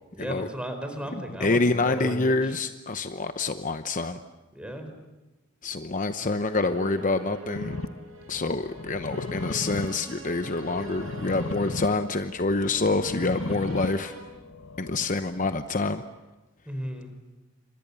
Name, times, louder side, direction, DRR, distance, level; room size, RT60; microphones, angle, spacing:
voice 1, 0.1-2.5 4.5-4.9 16.7-17.1, right 1 dB, 5° right, 6 dB, 4.6 m, -35 dB
voice 2, 1.1-4.2 5.6-7.8 8.3-14.1 14.8-16.0, left 3 dB, 40° left, 9 dB, 0.9 m, -27 dB
sound 1, 6.3-14.2, equal, 75° right, 7.7 m, -42 dB
sound 2, 7.6-15.5, left 2 dB, 85° left, 1.3 m, -37 dB
29.0 x 25.5 x 7.0 m, 1.1 s
head